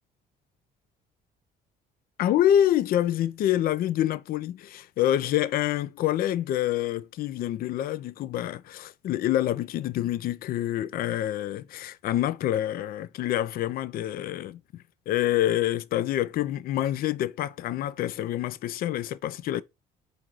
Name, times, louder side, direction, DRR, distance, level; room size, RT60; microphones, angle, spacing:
voice 1, 2.2-14.6 15.1-19.6, left 12 dB, 60° left, 0.4 m, -27 dB
4.5 x 2.6 x 3.9 m
cardioid pair, 110°, 17 cm